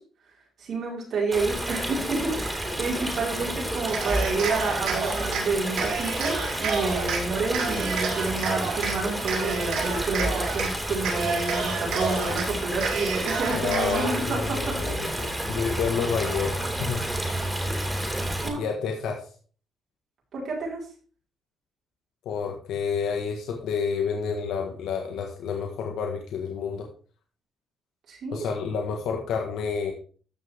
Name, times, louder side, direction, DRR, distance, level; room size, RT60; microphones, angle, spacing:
voice 1, 0.6-14.9 15.4-15.5 18.4-18.6 20.3-20.8 28.1-28.5, right 3 dB, 65° right, -3 dB, 5.2 m, -29 dB
Stream, 1.3-18.5, right 1 dB, 10° right, 3.6 m, -30 dB
Cheering, 3.9-5.4 5.8-7.2 7.5-8.9 9.3-10.7 11.0-12.4 12.8-14.2, right 5 dB, 85° right, 3.2 m, -30 dB
voice 2, 13.5-17.0 18.6-19.2 22.3-26.9 28.3-29.9, left 6 dB, 80° left, 2 dB, 1.7 m, -29 dB
14.0 x 6.3 x 3.6 m, 0.40 s
cardioid pair, 90°, 0 cm